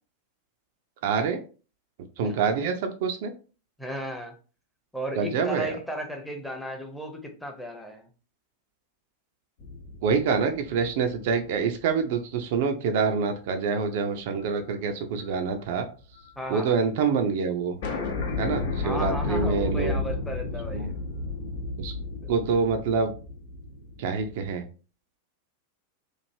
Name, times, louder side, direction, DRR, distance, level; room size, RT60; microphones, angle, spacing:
voice 1, 1.0-1.4 2.2-3.3 5.2-5.7 10.0-15.9 16.5-17.8 18.4-19.9 20.7-20.9 21.8-21.9 22.3-23.1 24.0-24.6, right 5 dB, 50° right, 7 dB, 0.4 m, -26 dB
voice 2, 3.8-4.4 4.9-8.1 16.4-16.8 18.8-20.9 22.2-22.3, equal, 5° left, 3 dB, 0.7 m, -35 dB
sound 1, 9.6-12.2 12.7-12.8 14.3-14.6 14.9-16.3 16.6-16.7 16.9-17.0 17.3-17.4 17.8-24.5, left 3 dB, 55° left, 0.7 m, -32 dB
3.1 x 2.5 x 2.6 m, 0.35 s
figure-of-eight pair, 90°, 0 cm